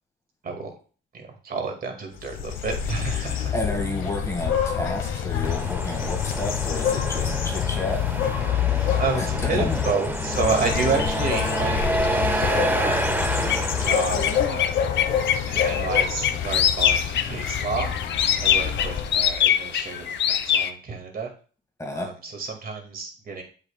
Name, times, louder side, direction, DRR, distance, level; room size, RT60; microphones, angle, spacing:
voice 1, 1.1-3.5 9.0-14.2 14.5-14.8 15.5-17.9 18.4-21.3 22.0-23.4, right 4 dB, 50° right, 4 dB, 2.0 m, -30 dB
sound 1, 2.2-19.5, left 8 dB, 85° left, 1.1 m, -27 dB
voice 2, 3.5-8.1 9.2-9.8 21.8-22.1, left 2 dB, 15° left, 2 dB, 1.8 m, -31 dB
Truck, 5.4-14.4, right 1 dB, 10° right, 0.6 m, -29 dB
sound 2, 10.6-20.7, left 9 dB, 60° left, 0.6 m, -26 dB
7.7 x 6.2 x 2.2 m, 0.39 s
cardioid pair, 90°, 20 cm